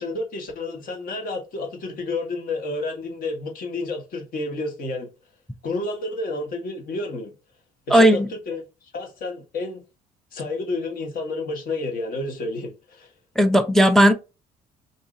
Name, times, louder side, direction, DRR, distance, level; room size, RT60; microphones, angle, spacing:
voice 1, 0.0-5.1 5.6-7.3 7.9-8.6 8.9-9.8 10.3-13.1, left 2 dB, 60° left, 1.2 m, -30 dB
voice 2, 7.9-8.3 13.4-14.1, equal, ahead, 0.3 m, -15 dB
2.7 x 2.7 x 3.7 m
cardioid pair, 110°, 17 cm